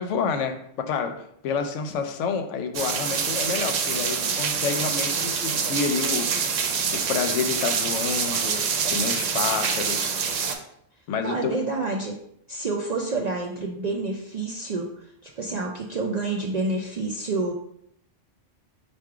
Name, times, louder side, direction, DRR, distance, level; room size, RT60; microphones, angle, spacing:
voice 1, 0.0-6.3 6.9-10.2 11.1-11.5, left 5 dB, 75° left, 7 dB, 0.9 m, -29 dB
sound 1, 2.7-10.5, right 6 dB, 90° right, 1.0 m, -26 dB
voice 2, 11.2-12.2 12.5-14.9 15.2-17.5, right 3 dB, 60° right, -1 dB, 0.4 m, -28 dB
4.6 x 2.4 x 4.7 m, 0.72 s
omnidirectional pair, 1.3 m